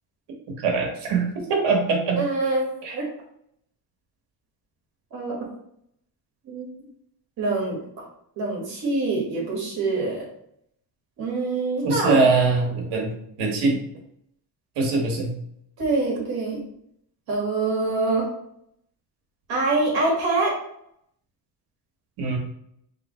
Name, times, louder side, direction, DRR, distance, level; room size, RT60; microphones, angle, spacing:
voice 1, 0.6-2.2 2.8-2.9 11.8-13.1 13.4-13.8 14.8-15.3 22.2-22.4, right 4 dB, 75° right, 0 dB, 1.5 m, -22 dB
voice 2, 2.2-3.1 5.1-5.4 6.4-6.7 7.4-7.8 8.4-10.3 11.2-12.2 15.8-16.6 17.3-18.3 19.5-20.5, right 3 dB, 60° right, -4 dB, 1.7 m, -25 dB
3.6 x 3.3 x 4.2 m, 0.71 s
cardioid pair, 170°, 41 cm